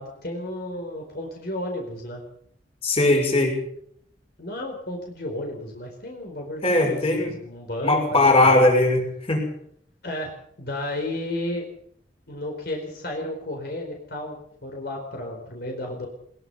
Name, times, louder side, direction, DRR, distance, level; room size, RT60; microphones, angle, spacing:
voice 1, 0.0-2.2 4.4-8.6 10.0-11.7 12.3-16.1, left 1 dB, 60° left, 1 dB, 4.6 m, -33 dB
voice 2, 2.8-3.5 6.6-7.3 7.8-9.5, left 2 dB, 35° left, 3 dB, 6.0 m, -19 dB
21.5 x 21.5 x 5.6 m, 0.67 s
head